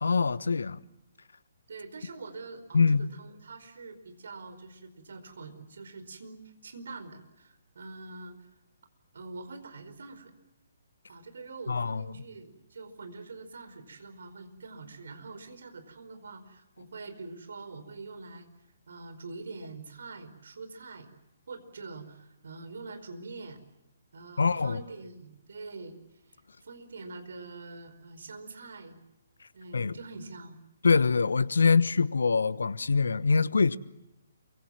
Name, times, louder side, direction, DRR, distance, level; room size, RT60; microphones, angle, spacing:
voice 1, 0.0-0.8 2.7-3.1 11.7-12.0 24.4-24.8 29.7-30.0 30.8-33.8, left 4 dB, 65° left, 1.2 m, -24 dB
voice 2, 1.7-8.5 9.1-10.3 11.1-18.5 18.9-21.1 21.5-23.6 24.1-29.0 29.5-30.6, right 3 dB, 60° right, 4.9 m, -45 dB
28.0 x 25.0 x 7.5 m
figure-of-eight pair, 135°, 0 cm